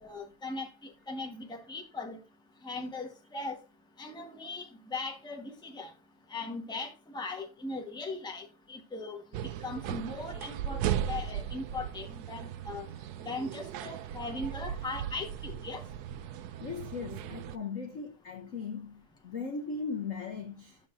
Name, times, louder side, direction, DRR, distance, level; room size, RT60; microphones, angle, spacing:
voice 1, 0.0-2.2 2.6-3.6 4.0-5.9 6.3-9.2 9.6-12.9 13.2-15.8, left 3 dB, 5° left, 1.1 m, -39 dB
sound 1, 9.3-17.6, right 10 dB, 90° right, 0.8 m, -37 dB
voice 2, 16.6-20.8, left 5 dB, 55° left, 0.9 m, -38 dB
11.5 x 6.6 x 2.6 m
omnidirectional pair, 2.3 m